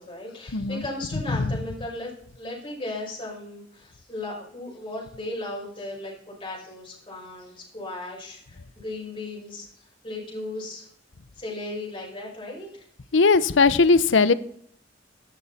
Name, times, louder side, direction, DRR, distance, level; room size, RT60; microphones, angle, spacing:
voice 1, 0.0-2.1 2.4-10.9 11.3-12.8, left 2 dB, 25° left, -3 dB, 5.7 m, -36 dB
voice 2, 0.5-0.8 1.4-1.5 13.1-14.3, left 4 dB, 85° left, 17 dB, 0.7 m, -19 dB
14.0 x 11.5 x 4.2 m, 0.66 s
head